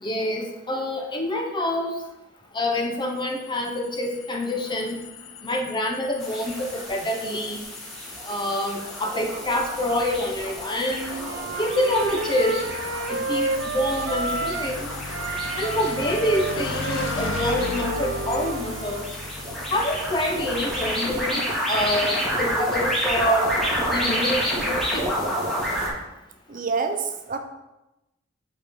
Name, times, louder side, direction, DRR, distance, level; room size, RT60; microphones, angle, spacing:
voice 1, 0.0-2.0 2.5-5.0 5.4-7.6 8.2-11.3 11.6-12.6 13.1-14.9 15.6-19.0 19.7-23.5 23.9-25.2, left 1 dB, 25° left, 2 dB, 0.8 m, -26 dB
sound 1, 3.0-21.5, left 4 dB, 80° left, 0.5 m, -38 dB
sound 2, 6.2-25.9, equal, ahead, 1.9 m, -30 dB
Wind instrument woodwind instrument, 11.1-14.8 15.1-19.0, right 3 dB, 85° right, 0.6 m, -30 dB
voice 2, 26.5-27.4, right 4 dB, 45° right, 6 dB, 0.6 m, -27 dB
8.2 x 4.4 x 3.6 m, 0.96 s
head